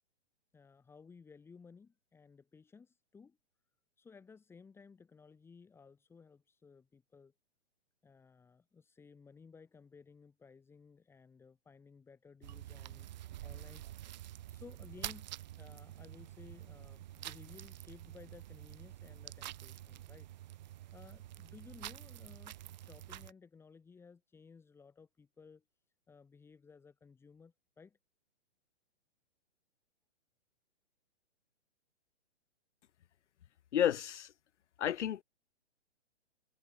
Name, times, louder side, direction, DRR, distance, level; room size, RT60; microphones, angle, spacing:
voice 1, 0.5-3.4 4.0-7.3 8.0-15.3 15.6-20.3 20.6-25.6 26.1-28.0, left 5 dB, 5° left, 6.2 m, -58 dB
sound 1, 12.4-23.3, right 13 dB, 40° right, 2.2 m, -48 dB
voice 2, 33.7-34.3 34.8-35.2, left 10 dB, 85° left, 0.8 m, -31 dB
hypercardioid pair, 165°, 35 cm